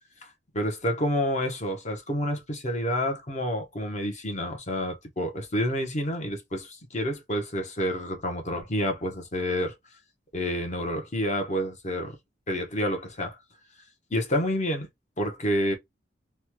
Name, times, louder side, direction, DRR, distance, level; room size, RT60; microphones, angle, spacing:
voice 1, 0.5-9.7 10.3-12.2 12.5-13.4 14.1-14.9 15.2-15.7, equal, 40° left, 0.8 m, -29 dB
3.1 x 2.2 x 2.9 m
head